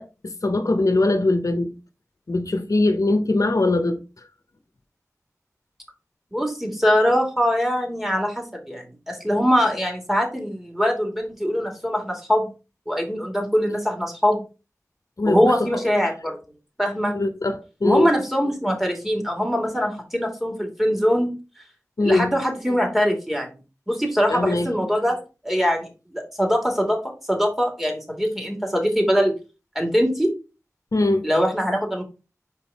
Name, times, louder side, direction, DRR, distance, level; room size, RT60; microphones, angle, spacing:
voice 1, 0.0-1.8 2.3-4.0 15.2-15.7 17.1-18.1 22.0-22.3 24.3-24.7 30.9-31.3, left 2 dB, 80° left, 0.9 m, -21 dB
voice 2, 6.3-12.5 12.9-14.4 15.2-16.4 16.8-17.2 17.8-21.3 22.0-23.6 23.9-27.0 27.3-29.3 29.7-30.3 31.2-32.0, equal, 5° right, 2.7 m, -22 dB
5.3 x 4.7 x 4.2 m
wide cardioid pair, 40°, 6 cm